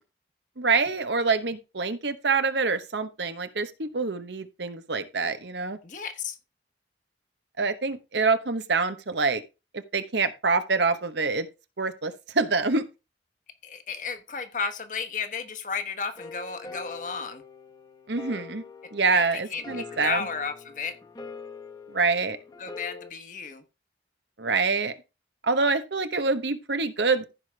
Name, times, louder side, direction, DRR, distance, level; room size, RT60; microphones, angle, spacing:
voice 1, 0.6-5.8 7.6-9.4 9.7-11.5 11.8-12.8 18.1-18.6 18.9-20.3 21.9-22.4 24.4-24.9 25.4-27.2, right 4 dB, 75° right, 1.0 m, -26 dB
voice 2, 5.8-6.4 13.6-17.4 19.1-19.2 19.5-21.0 22.6-23.6, left 5 dB, 45° left, 1.2 m, -33 dB
sound 1, 16.2-23.1, left 4 dB, 25° left, 1.1 m, -43 dB
15.0 x 5.1 x 3.3 m
head